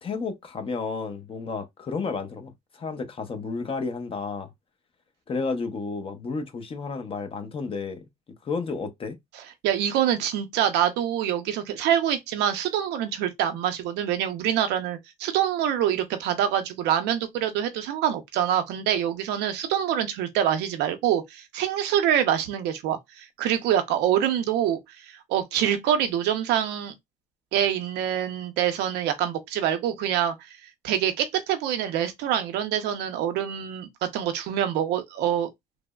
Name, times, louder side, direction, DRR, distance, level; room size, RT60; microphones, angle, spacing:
voice 1, 0.0-4.5 5.3-8.1 8.4-9.2, left 4 dB, 35° left, 0.6 m, -32 dB
voice 2, 9.6-24.8 25.3-26.9 27.5-30.3 30.8-35.5, right 10 dB, 85° right, 0.6 m, -25 dB
3.1 x 2.0 x 2.2 m
cardioid pair, 110°, 17 cm